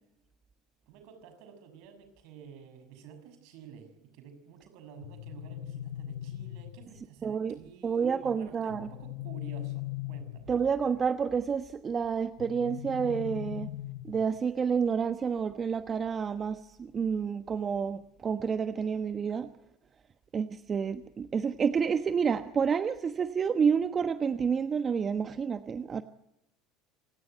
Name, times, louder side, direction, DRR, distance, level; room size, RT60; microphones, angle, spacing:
voice 1, 0.9-10.6, right 6 dB, 65° right, 9 dB, 6.5 m, -50 dB
sound 1, 5.0-7.0 8.7-10.7 12.4-14.4, left 15 dB, 75° left, 0.8 m, -39 dB
voice 2, 7.2-7.6 7.8-8.9 10.5-13.7 14.0-19.5 20.3-26.0, right 6 dB, 35° right, 10 dB, 1.2 m, -29 dB
27.0 x 18.0 x 9.3 m, 0.87 s
hypercardioid pair, 85°, 0 cm